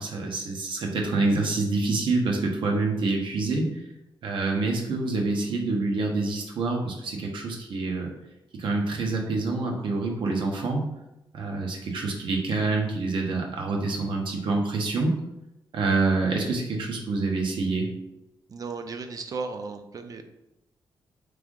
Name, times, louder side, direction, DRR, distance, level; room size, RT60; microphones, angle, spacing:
voice 1, 0.0-3.7 4.2-8.1 8.5-10.9 11.3-15.2 15.7-17.9, right 3 dB, 70° right, 1 dB, 0.9 m, -26 dB
voice 2, 18.5-20.2, right 4 dB, 45° right, 7 dB, 0.5 m, -35 dB
3.5 x 3.3 x 3.7 m, 0.90 s
wide cardioid pair, 130°, 9 cm